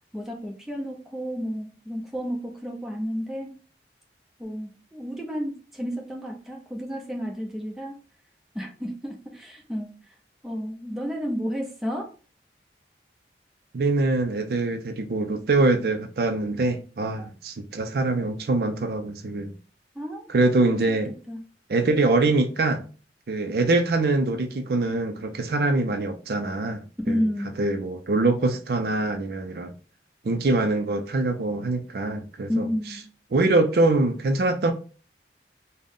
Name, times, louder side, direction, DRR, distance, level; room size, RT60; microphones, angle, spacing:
voice 1, 0.1-3.5 4.4-8.0 8.5-10.0 10.4-12.1 17.2-17.3 20.0-20.3 20.9-21.0 21.3-21.4 27.1-27.6 32.5-33.1, equal, ahead, 0.6 m, -31 dB
voice 2, 13.7-19.5 20.3-21.1 21.7-22.8 23.3-27.2 27.6-29.7 30.2-32.7 33.3-34.7, right 2 dB, 55° right, 0.4 m, -24 dB
3.6 x 2.1 x 3.6 m
head